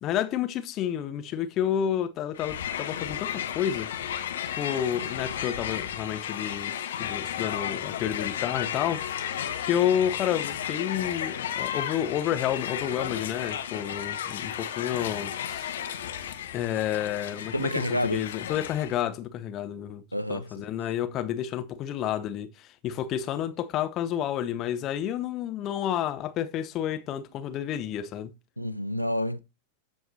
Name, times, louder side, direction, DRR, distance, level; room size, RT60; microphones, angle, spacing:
voice 1, 0.0-4.2 4.6-9.0 9.6-15.7 16.5-20.0 20.3-28.3, left 10 dB, 35° left, 0.8 m, -30 dB
Crowd, 2.3-19.0, left 9 dB, 60° left, 0.9 m, -33 dB
voice 2, 17.5-18.2 20.1-20.5 28.6-29.4, equal, 90° right, 0.4 m, -28 dB
13.5 x 4.6 x 2.7 m
figure-of-eight pair, 90°, 0 cm